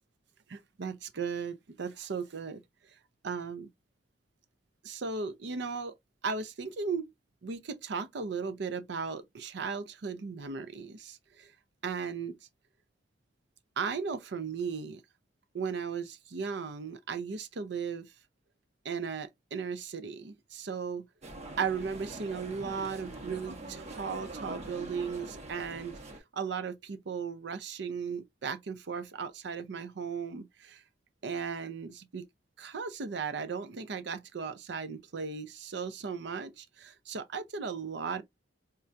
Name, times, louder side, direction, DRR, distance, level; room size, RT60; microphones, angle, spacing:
voice 1, 0.5-2.6 3.2-3.7 4.8-5.9 6.2-7.1 7.4-11.5 11.8-12.4 13.8-15.0 15.5-18.1 18.8-21.1 21.6-26.0 26.3-30.8 31.2-32.2 32.6-38.2, right 5 dB, 65° right, 0.5 m, -36 dB
sound 1, 21.2-26.2, right 2 dB, 35° right, 0.8 m, -43 dB
4.4 x 2.2 x 2.5 m
head